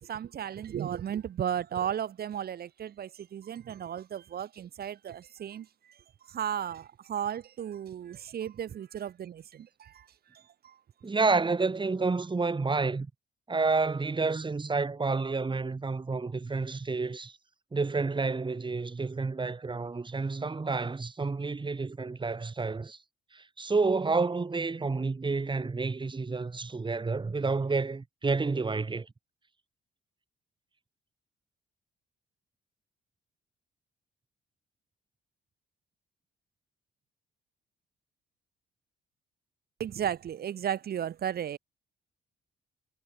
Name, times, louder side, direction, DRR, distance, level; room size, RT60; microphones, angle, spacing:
voice 1, 0.0-10.8 39.8-41.6, right 9 dB, 50° right, 0.8 m, -35 dB
voice 2, 11.0-13.1 13.5-17.3 17.7-23.0 23.3-29.1, right 4 dB, 25° right, 2.1 m, -29 dB
cardioid pair, 90°, 20 cm